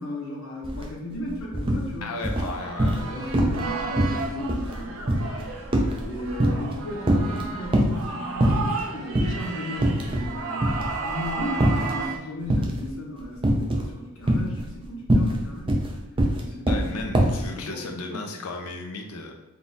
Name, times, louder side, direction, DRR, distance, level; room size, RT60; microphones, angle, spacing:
voice 1, 0.0-2.1 3.1-5.5 6.0-15.8 16.4-16.9 17.3-18.3, left 1 dB, 70° left, -2 dB, 1.0 m, -35 dB
sound 1, 0.6-0.8 1.1-1.9 2.2-3.1 3.3-3.7 4.0-6.8 7.0-8.0 8.4-8.8 9.2-9.3 9.8-10.3 10.6-12.0 12.5-12.9 13.4-13.9 14.2-17.5, right 1 dB, 25° right, 0.4 m, -23 dB
voice 2, 2.0-3.1 16.7-19.3, left 3 dB, 90° left, 3 dB, 0.6 m, -34 dB
sound 2, 2.4-12.2, right 4 dB, 70° right, 0.5 m, -33 dB
3.6 x 2.4 x 4.0 m, 1.0 s
head